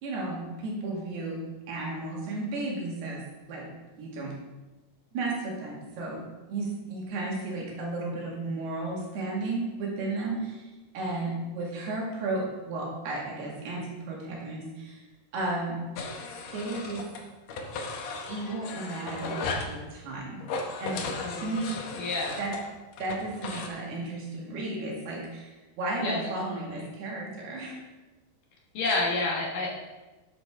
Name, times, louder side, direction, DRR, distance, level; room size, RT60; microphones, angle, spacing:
voice 1, 0.0-1.4 1.7-3.2 3.5-3.7 4.0-4.4 5.1-10.7 10.9-15.0 15.3-15.8 16.5-17.1 18.3-20.4 20.8-21.1 21.4-21.7 22.4-22.5 23.0-27.8, right 2 dB, 80° right, -3 dB, 4.1 m, -33 dB
sound 1, 16.0-17.2 17.5-19.7 20.4-23.7, left 3 dB, 85° left, 1.5 m, -36 dB
voice 2, 21.1-21.6 21.9-22.4 26.0-26.9 28.7-29.7, left 2 dB, 65° left, -2 dB, 2.5 m, -30 dB
11.5 x 7.7 x 3.7 m, 1.1 s
omnidirectional pair, 4.6 m